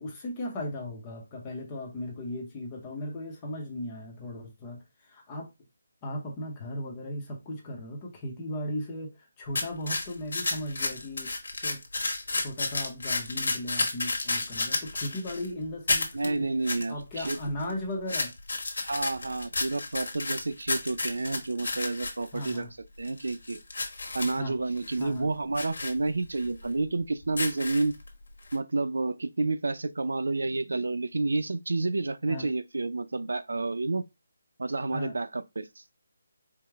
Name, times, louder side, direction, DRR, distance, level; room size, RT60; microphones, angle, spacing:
voice 1, 0.0-5.5 6.0-11.3 11.6-11.8 12.4-16.5 16.9-18.3 22.3-22.7 24.2-24.6 25.0-25.3 32.3-32.5 34.9-35.2, left 1 dB, 15° left, 0.7 m, -37 dB
sound 1, 9.5-15.5 15.9-16.3 16.6-16.8 17.1-17.7 18.1-22.6 23.0-24.4 24.8-25.0 25.5-25.9 26.4-26.5 27.2-28.1 28.5-28.6, left 3 dB, 60° left, 1.2 m, -31 dB
voice 2, 16.1-17.7 18.8-22.7 23.0-23.6 24.1-27.9 28.5-34.0 34.6-35.8, right 3 dB, 90° right, 0.5 m, -30 dB
4.7 x 2.1 x 3.5 m
hypercardioid pair, 180°, 0 cm